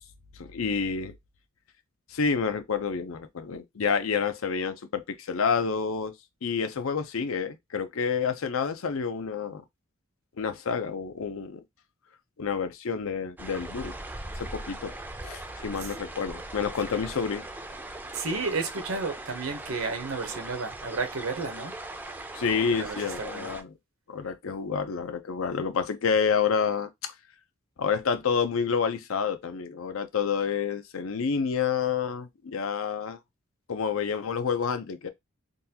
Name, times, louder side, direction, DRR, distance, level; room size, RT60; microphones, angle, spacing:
voice 1, 0.4-1.1 2.1-6.1 6.4-9.6 10.4-11.6 12.4-13.9 14.4-14.9 15.2-17.4 22.3-23.7 24.1-27.1 27.8-33.2 33.7-35.1, left 6 dB, 80° left, 0.6 m, -29 dB
sound 1, 13.4-23.6, right 2 dB, 10° right, 0.4 m, -40 dB
voice 2, 18.1-21.7 22.7-23.5, right 4 dB, 85° right, 0.8 m, -32 dB
3.8 x 2.3 x 2.7 m
head